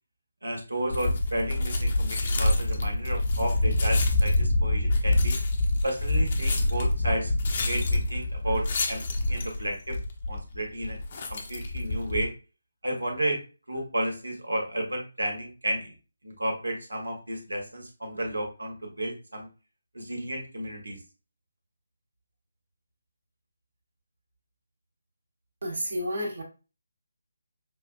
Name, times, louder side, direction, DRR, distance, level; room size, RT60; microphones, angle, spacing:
voice 1, 0.4-5.4 5.8-7.3 7.6-10.0 10.3-11.0 11.3-12.3 12.8-13.4 13.7-15.9 16.2-19.5 19.9-21.0, right 1 dB, 80° right, 3 dB, 1.3 m, -32 dB
sound 1, 0.9-12.3, left 2 dB, 40° left, 0.8 m, -26 dB
voice 2, 25.6-26.4, equal, 60° right, 0 dB, 1.2 m, -30 dB
5.9 x 2.4 x 2.4 m, 0.33 s
figure-of-eight pair, 150°, 0 cm